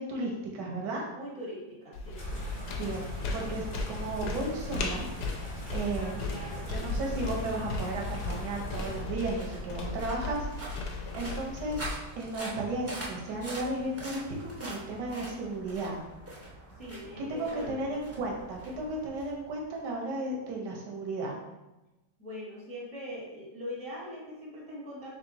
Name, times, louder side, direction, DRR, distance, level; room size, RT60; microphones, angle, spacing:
voice 1, 0.0-1.1 2.8-3.1 3.3-5.0 5.7-6.3 6.7-10.5 11.1-11.9 12.2-16.0 17.2-21.3, right 2 dB, 85° right, -1 dB, 1.4 m, -34 dB
voice 2, 1.1-2.4 5.9-6.7 16.8-17.8 22.2-25.2, equal, 5° left, -5 dB, 0.7 m, -42 dB
sound 1, 1.9-11.9, left 3 dB, 75° left, 1.2 m, -36 dB
sound 2, 2.1-9.0, left 1 dB, 40° left, 1.2 m, -41 dB
sound 3, 6.6-19.9, right 1 dB, 20° right, 0.3 m, -45 dB
3.6 x 3.1 x 3.9 m, 1.0 s
omnidirectional pair, 1.8 m